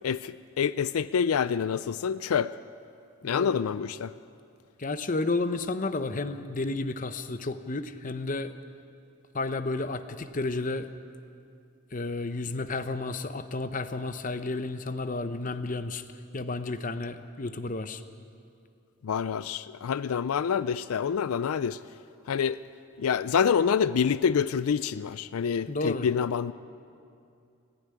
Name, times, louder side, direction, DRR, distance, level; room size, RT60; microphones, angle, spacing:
voice 1, 0.0-2.5 3.2-4.1 19.0-21.8 22.3-22.6 23.0-26.5, left 7 dB, 90° left, 16 dB, 0.4 m, -27 dB
voice 2, 3.2-3.6 4.8-8.5 9.3-10.9 11.9-16.0 16.3-18.0 25.7-26.1, left 3 dB, 40° left, 10 dB, 0.8 m, -32 dB
19.0 x 15.5 x 9.7 m, 2.5 s
head